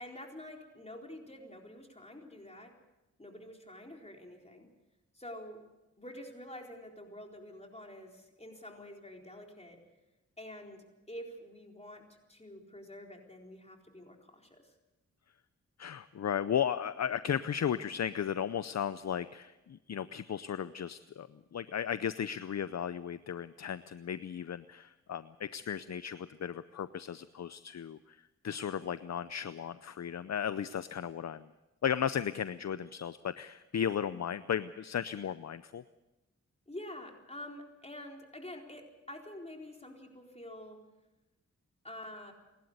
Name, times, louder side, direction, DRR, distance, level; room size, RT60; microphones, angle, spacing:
voice 1, 0.0-2.7 3.2-4.7 5.1-5.6 6.0-9.8 10.4-12.0 12.3-14.7 34.1-34.2 36.7-38.8 39.1-40.8 41.8-42.3, left 1 dB, 20° left, 2 dB, 4.1 m, -47 dB
voice 2, 15.8-31.5 31.8-35.8, left 8 dB, 60° left, 14 dB, 0.7 m, -35 dB
28.0 x 12.0 x 8.1 m, 1.0 s
cardioid pair, 50°, 30 cm